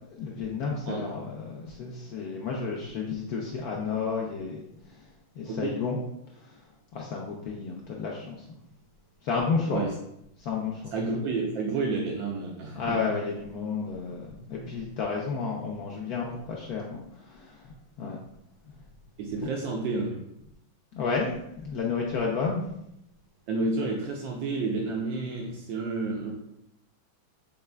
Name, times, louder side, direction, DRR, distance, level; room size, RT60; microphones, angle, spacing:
voice 1, 0.1-4.6 5.4-6.0 6.4-6.5 6.9-8.6 9.2-9.8 10.4-10.9 12.7-18.2 19.4-19.5 20.9-22.6, left 5 dB, 80° left, -1 dB, 0.8 m, -31 dB
voice 2, 10.9-13.1 19.2-20.2 23.5-26.3, right 3 dB, 75° right, -1 dB, 1.3 m, -30 dB
6.7 x 3.3 x 2.2 m, 0.80 s
omnidirectional pair, 2.2 m